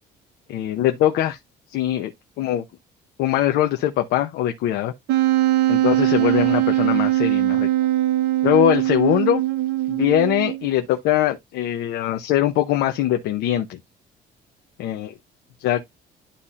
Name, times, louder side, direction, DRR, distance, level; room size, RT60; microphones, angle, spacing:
voice 1, 0.5-1.4 1.7-2.1 2.4-2.6 3.2-4.9 5.7-7.7 8.4-9.4 9.9-13.8 14.8-15.1 15.6-15.9, left 12 dB, 85° left, 0.9 m, -21 dB
Wind instrument woodwind instrument, 5.1-10.8, right 15 dB, 90° right, 0.7 m, -21 dB
11.5 x 4.2 x 2.5 m
cardioid pair, 110°, 17 cm